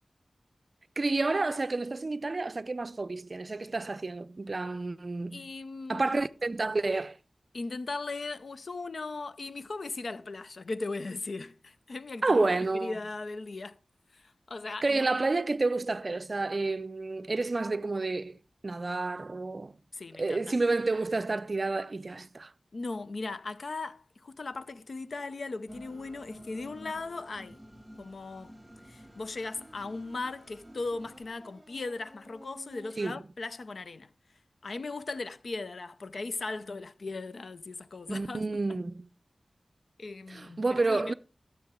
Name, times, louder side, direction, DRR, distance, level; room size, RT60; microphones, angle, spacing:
voice 1, 1.0-5.5 5.9-7.2 12.2-12.9 14.8-19.8 20.1-22.5 33.0-33.2 38.1-39.1 40.3-41.1, right 3 dB, 45° right, 0.5 m, -30 dB
voice 2, 5.3-6.2 7.5-13.8 14.1-15.1 19.9-20.5 22.7-27.6 28.0-28.5 28.9-34.1 34.6-38.6 40.0-41.1, left 3 dB, 70° left, 0.6 m, -38 dB
sound 1, 25.7-32.9, equal, 5° right, 2.2 m, -51 dB
13.5 x 6.9 x 3.6 m
wide cardioid pair, 80°, 0 cm